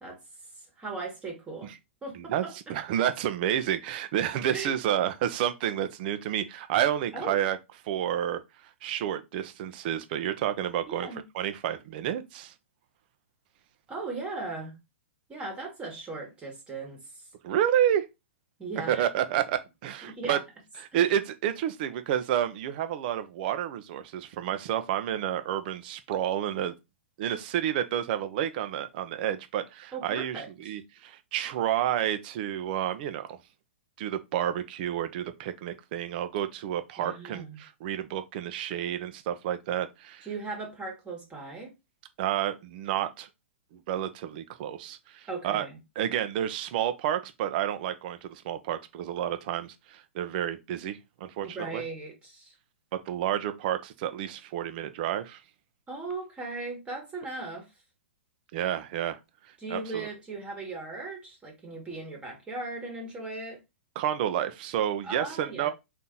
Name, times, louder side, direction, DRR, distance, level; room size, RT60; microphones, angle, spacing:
voice 1, 0.6-1.7 2.0-2.7 4.5-4.7 7.1-7.4 10.9-11.2 13.9-14.8 15.3-17.3 18.6-19.0 20.0-20.4 20.9-21.1 29.9-30.8 37.0-37.6 40.2-41.7 45.3-45.8 51.4-52.5 55.9-57.7 59.6-63.6 65.0-65.7, right 3 dB, 15° right, 1.4 m, -38 dB
voice 2, 2.7-7.6 7.8-8.4 8.8-11.1 11.3-12.5 17.4-18.1 18.9-20.4 20.9-26.7 27.2-33.4 34.0-40.3 42.2-43.3 43.7-45.7 46.0-51.8 53.1-55.4 58.5-59.2 59.7-60.1 64.0-65.7, right 10 dB, 45° right, 0.7 m, -30 dB
4.2 x 2.8 x 3.7 m
hypercardioid pair, 135°, 7 cm